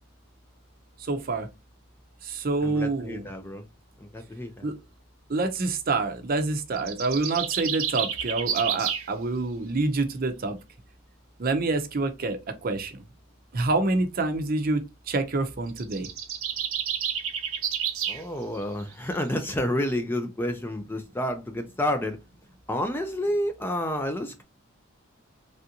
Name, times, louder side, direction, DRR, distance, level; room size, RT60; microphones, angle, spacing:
voice 1, 1.0-1.5 2.2-3.3 4.6-4.8 5.3-10.6 11.4-13.0 13.5-16.1, right 3 dB, 45° right, 0.6 m, -27 dB
voice 2, 2.6-3.6 4.1-4.7 18.1-22.2 22.7-24.4, left 1 dB, 10° left, 0.3 m, -29 dB
sound 1, 6.8-9.1 15.7-18.2, right 9 dB, 80° right, 0.7 m, -30 dB
3.4 x 2.5 x 2.7 m
head